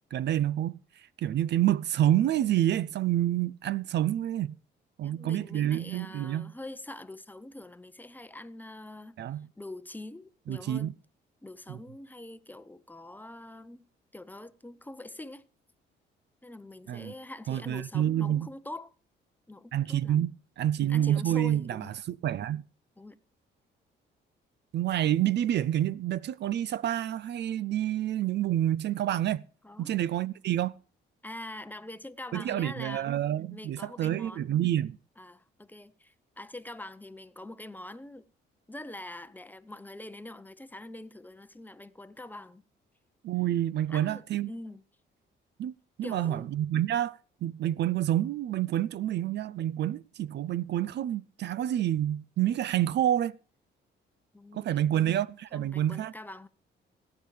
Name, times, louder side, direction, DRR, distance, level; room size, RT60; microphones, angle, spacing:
voice 1, 0.1-4.6 5.0-6.5 9.2-9.5 10.5-10.9 11.7-11.8 16.9-17.1 17.5-18.5 19.7-22.6 24.7-29.4 29.8-30.7 32.3-35.0 43.2-44.5 45.6-45.7 46.0-53.3 54.5-56.1, right 12 dB, 60° right, 0.4 m, -28 dB
voice 2, 5.0-9.2 9.6-10.9 11.4-13.9 14.1-15.4 16.4-18.9 19.5-20.3 20.8-21.9 23.0-23.2 29.6-30.0 31.2-33.1 33.5-34.5 35.2-38.2 38.7-42.6 43.9-44.8 46.0-46.5 54.3-55.2 55.5-56.5, left 1 dB, 10° left, 0.7 m, -44 dB
18.5 x 8.6 x 3.3 m
cardioid pair, 90°, 20 cm